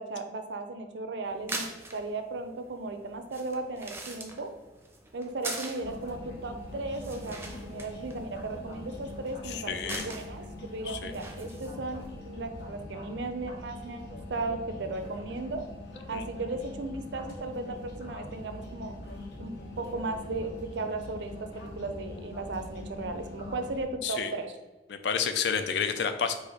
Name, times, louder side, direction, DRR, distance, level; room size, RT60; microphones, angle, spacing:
voice 1, 0.0-4.5 5.1-15.6 16.1-18.9 19.4-24.5, right 3 dB, 85° right, 7 dB, 0.5 m, -36 dB
sound 1, 1.2-12.0, right 2 dB, 15° right, 0.5 m, -44 dB
sound 2, 5.8-23.8, left 2 dB, 90° left, 1.1 m, -43 dB
voice 2, 9.4-10.0 10.9-11.1 16.1-16.2 24.0-24.3 24.9-26.3, left 6 dB, 75° left, 8 dB, 0.4 m, -30 dB
4.7 x 2.5 x 4.2 m, 1.2 s
head